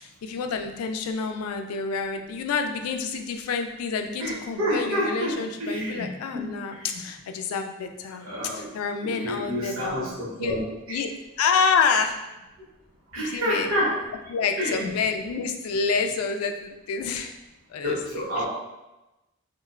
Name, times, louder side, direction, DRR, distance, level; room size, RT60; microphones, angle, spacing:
voice 1, 0.0-10.1 10.4-10.5 10.9-11.1 11.4-12.2 13.2-13.7 14.3-17.4 17.7-18.2, left 5 dB, 80° left, 8 dB, 0.3 m, -28 dB
voice 2, 4.2-7.0 8.2-11.0 13.1-14.0 14.6-14.9 17.8-18.5, equal, 75° right, -6 dB, 0.9 m, -29 dB
3.0 x 2.1 x 2.3 m, 1.0 s
head